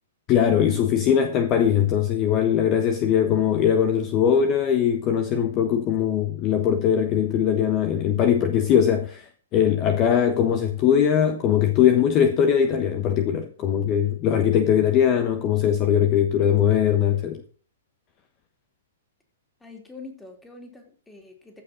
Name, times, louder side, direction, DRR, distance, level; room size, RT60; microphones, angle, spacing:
voice 1, 0.3-17.4, left 9 dB, 35° left, 1.1 m, -21 dB
voice 2, 19.6-21.6, left 3 dB, 5° left, 3.3 m, -44 dB
15.0 x 5.5 x 6.3 m
figure-of-eight pair, 115°, 0 cm